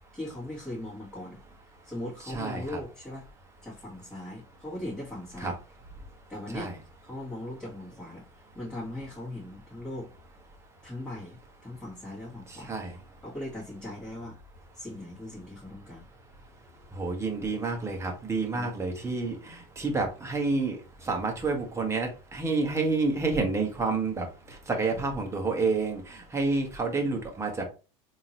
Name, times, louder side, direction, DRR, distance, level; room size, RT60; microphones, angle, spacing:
voice 1, 0.1-1.4 1.8-3.3 3.6-5.5 6.3-6.7 7.0-8.2 8.5-10.1 10.8-12.7 13.2-14.4 14.7-16.1 18.5-19.0, left 1 dB, 5° left, -8 dB, 1.9 m, -39 dB
voice 2, 2.2-2.8 5.4-5.5 6.5-6.8 12.7-12.9 17.0-20.8 21.1-24.3 24.7-27.6, right 3 dB, 15° right, 2 dB, 1.4 m, -29 dB
3.6 x 2.8 x 3.0 m, 0.33 s
supercardioid pair, 105°, 17 cm